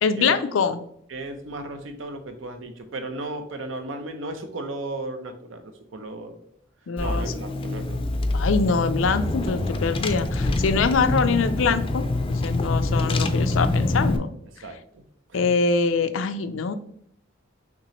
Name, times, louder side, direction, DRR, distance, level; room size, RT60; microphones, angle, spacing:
voice 1, 0.0-0.8 6.9-7.3 8.3-14.3 15.3-16.7, left 5 dB, 85° left, 11 dB, 0.4 m, -24 dB
voice 2, 1.1-6.3 7.0-8.0 14.6-15.0 15.3-15.5, right 2 dB, 80° right, 7 dB, 0.7 m, -35 dB
Car / Engine, 7.0-14.2, left 2 dB, 30° left, 0.4 m, -25 dB
6.0 x 3.0 x 3.0 m, 0.67 s
head